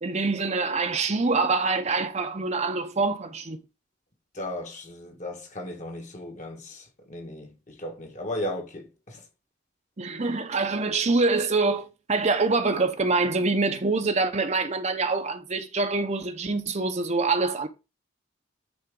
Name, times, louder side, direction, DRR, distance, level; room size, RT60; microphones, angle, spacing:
voice 1, 0.0-3.6 10.0-17.7, right 3 dB, 35° right, 0.8 m, -25 dB
voice 2, 4.3-9.3, left 1 dB, 40° left, 1.5 m, -36 dB
9.7 x 4.0 x 3.8 m
head